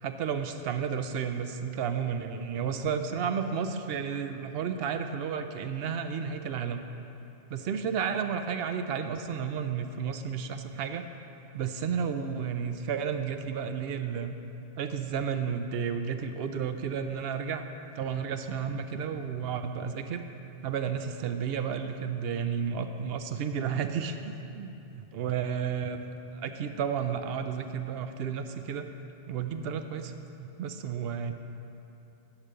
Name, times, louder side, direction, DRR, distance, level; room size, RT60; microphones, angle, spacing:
voice 1, 0.0-6.8 7.5-11.0 11.5-14.3 14.8-17.6 17.9-20.2 20.6-24.2 24.5-28.9 29.3-31.3, right 7 dB, 65° right, 8 dB, 0.8 m, -32 dB
10.5 x 4.9 x 6.7 m, 2.9 s
omnidirectional pair, 1.2 m